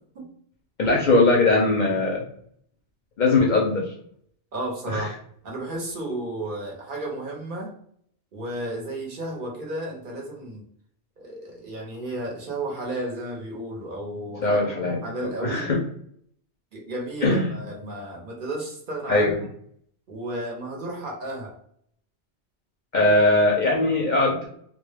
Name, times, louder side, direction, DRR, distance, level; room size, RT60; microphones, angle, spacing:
voice 1, 0.8-2.2 3.2-3.9 4.9-5.1 14.4-15.8 17.2-17.5 19.1-19.4 22.9-24.5, left 2 dB, 55° left, -1 dB, 0.5 m, -20 dB
voice 2, 4.5-5.1 5.4-7.7 8.3-10.6 11.2-15.7 16.7-19.3 20.1-21.5, right 1 dB, 55° right, -1 dB, 0.7 m, -33 dB
2.2 x 2.0 x 3.2 m, 0.65 s
omnidirectional pair, 1.1 m